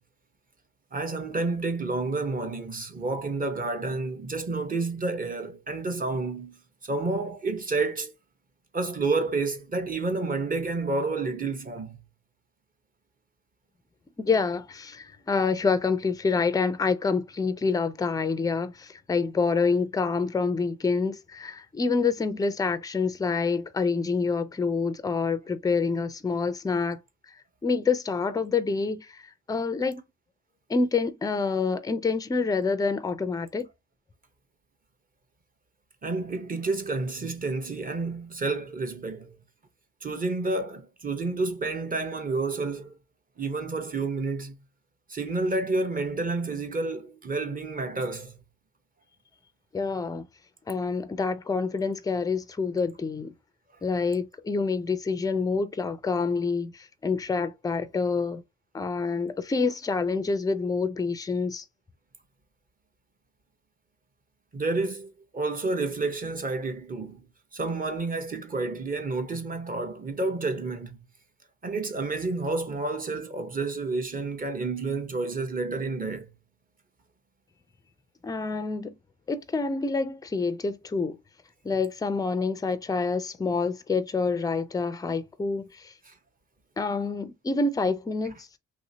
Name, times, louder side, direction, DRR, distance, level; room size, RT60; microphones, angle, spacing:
voice 1, 0.9-8.1 8.7-12.0 36.0-39.4 40.0-43.0 43.4-44.6 45.1-48.4 64.5-67.2 67.5-71.0 71.6-76.3 86.1-86.2, right 3 dB, 30° right, 0.9 m, -30 dB
voice 2, 14.2-27.0 27.6-30.0 30.7-33.7 49.7-50.3 50.7-53.3 53.8-58.4 58.7-61.6 78.2-79.0 79.3-81.2 81.6-85.9 86.8-88.5, left 4 dB, 10° left, 0.4 m, -27 dB
3.2 x 2.7 x 2.7 m
cardioid pair, 90°, 30 cm